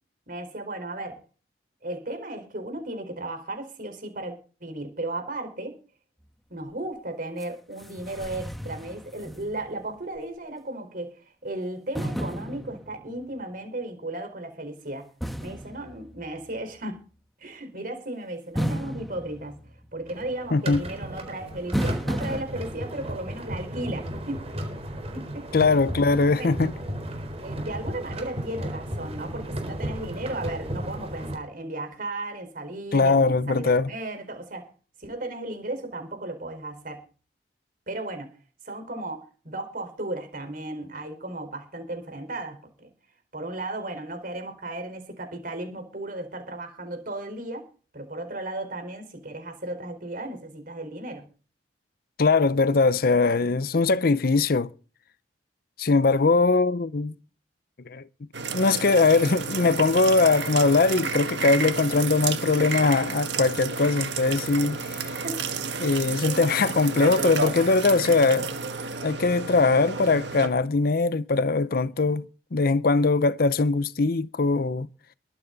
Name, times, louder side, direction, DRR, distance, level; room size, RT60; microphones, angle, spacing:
voice 1, 0.3-1.2 1.8-4.4 4.6-5.8 6.5-15.1 15.4-17.0 17.4-19.6 19.9-24.5 25.1-25.6 26.2-26.5 27.4-34.7 35.0-37.0 37.9-38.3 38.6-42.9 43.3-47.7 47.9-51.3 65.2-65.4 66.2-66.4, right 2 dB, 50° right, 4.5 m, -35 dB
sound 1, 7.4-7.5 7.8-9.8 10.2-10.3 11.9-13.3 15.2-16.6 18.6-20.1 21.7-22.4, equal, ahead, 1.3 m, -33 dB
sound 2, 20.1-31.4, right 1 dB, 35° right, 4.2 m, -34 dB
voice 2, 25.5-26.7 32.9-33.9 52.2-54.7 55.8-57.1 57.9-58.0 58.5-65.2 65.8-68.5 69.0-72.3 72.5-74.9, left 3 dB, 55° left, 0.6 m, -21 dB
sound 3, 58.3-70.5, right 5 dB, 80° right, 1.8 m, -31 dB
22.5 x 9.0 x 4.0 m
head